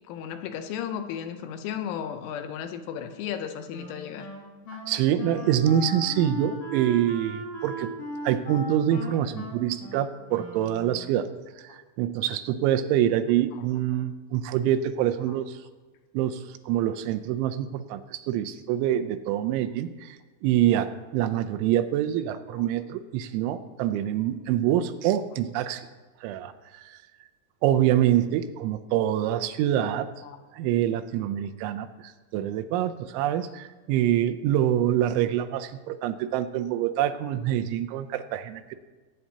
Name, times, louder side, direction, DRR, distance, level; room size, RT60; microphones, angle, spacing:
voice 1, 0.1-4.3 22.5-22.7 30.2-30.4, left 8 dB, 80° left, 7 dB, 3.2 m, -34 dB
Wind instrument woodwind instrument, 3.7-11.1, right 1 dB, 55° left, 1.8 m, -38 dB
voice 2, 4.9-7.9 8.2-11.3 11.6-15.6 16.1-25.9 26.2-27.0 27.6-30.1 30.5-38.7, right 11 dB, 80° right, 9 dB, 2.9 m, -26 dB
19.0 x 9.2 x 2.8 m, 1.3 s
omnidirectional pair, 5.6 m